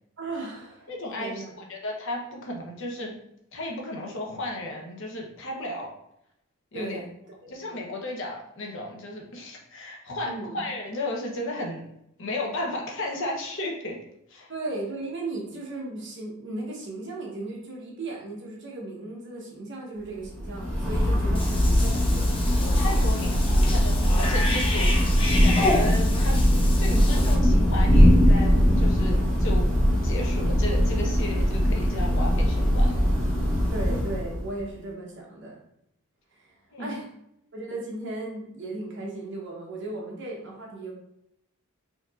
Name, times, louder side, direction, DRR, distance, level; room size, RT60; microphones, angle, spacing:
voice 1, 0.2-0.9 1.2-1.6 6.7-7.5 10.2-10.6 14.5-22.3 24.4-24.6 33.7-35.6 36.4-36.5 36.8-37.1 37.5-40.9, right 2 dB, 55° right, -2 dB, 1.0 m, -36 dB
voice 2, 0.9-3.1 3.5-5.9 6.7-7.0 7.5-11.8 12.2-14.0 14.3-14.5 22.7-29.7 30.0-33.1 36.7-36.9, left 1 dB, 60° left, 0 dB, 0.8 m, -34 dB
Thunder / Rain, 20.3-34.6, equal, 5° left, 1.4 m, -21 dB
Cat / Bathtub (filling or washing), 21.3-27.3, left 2 dB, 25° left, 0.5 m, -31 dB
4.4 x 2.8 x 2.4 m, 0.77 s
head